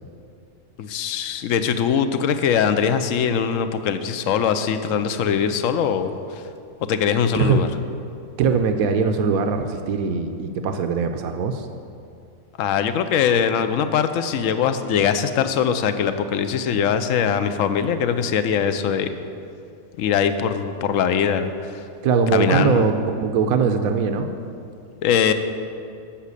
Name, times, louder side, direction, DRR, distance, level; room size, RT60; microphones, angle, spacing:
voice 1, 0.8-6.2 6.9-7.7 12.6-19.1 20.0-21.8 22.3-22.9 25.0-25.3, left 7 dB, 70° left, 10 dB, 1.0 m, -21 dB
voice 2, 7.3-7.7 8.4-11.7 22.0-24.3, right 5 dB, 80° right, 7 dB, 1.1 m, -21 dB
11.5 x 7.4 x 8.3 m, 2.6 s
omnidirectional pair, 1.5 m